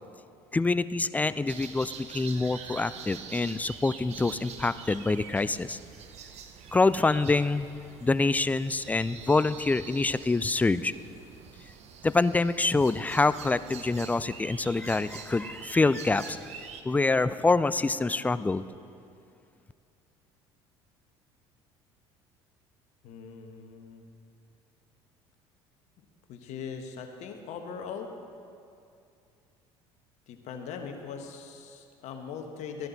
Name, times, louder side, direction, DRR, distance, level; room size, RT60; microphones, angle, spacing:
voice 1, 0.5-5.8 6.7-7.7 8.0-10.9 12.0-16.4 16.8-18.7, left 3 dB, 10° left, 15 dB, 0.3 m, -26 dB
sound 1, 1.5-16.8, right 7 dB, 55° right, 0.9 m, -45 dB
voice 2, 23.0-24.1 26.3-28.1 30.3-32.9, left 6 dB, 60° left, 4 dB, 1.2 m, -40 dB
13.5 x 11.0 x 4.1 m, 2.5 s
hypercardioid pair, 70°, 13 cm